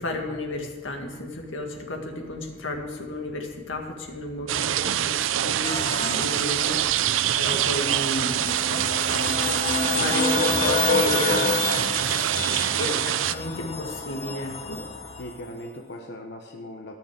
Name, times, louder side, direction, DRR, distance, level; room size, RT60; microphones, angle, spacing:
voice 1, 0.0-14.9, left 2 dB, 90° left, 3 dB, 2.0 m, -33 dB
sound 1, 4.5-13.3, right 11 dB, 90° right, 0.4 m, -25 dB
sound 2, 5.6-15.4, left 4 dB, 35° left, 0.9 m, -29 dB
voice 2, 12.3-12.6 15.2-16.9, left 1 dB, 60° left, 1 dB, 1.0 m, -39 dB
14.0 x 6.5 x 7.5 m, 1.3 s
head